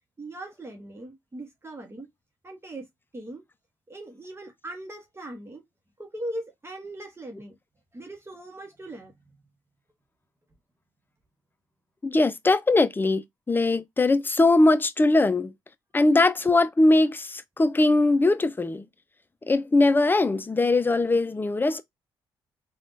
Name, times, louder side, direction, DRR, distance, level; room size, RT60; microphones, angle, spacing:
voice 1, 0.2-2.1 2.4-2.9 3.1-3.4 3.9-5.6 6.0-7.6 7.9-9.1 21.7-21.8, right 1 dB, 25° right, 1.0 m, -39 dB
voice 2, 12.0-15.5 15.9-18.8 19.5-21.8, left 2 dB, 20° left, 0.5 m, -21 dB
3.4 x 2.3 x 2.5 m
hypercardioid pair, 50°, 11 cm